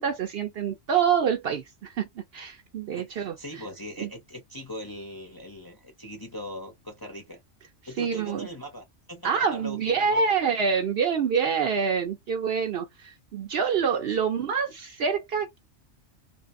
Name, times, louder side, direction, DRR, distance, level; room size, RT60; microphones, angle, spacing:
voice 1, 0.0-3.4 4.0-4.1 8.0-8.5 9.2-15.6, right 6 dB, 60° right, 0.7 m, -26 dB
voice 2, 2.9-7.4 7.9-10.2, equal, 25° left, 0.6 m, -40 dB
2.6 x 2.4 x 2.5 m
omnidirectional pair, 1.3 m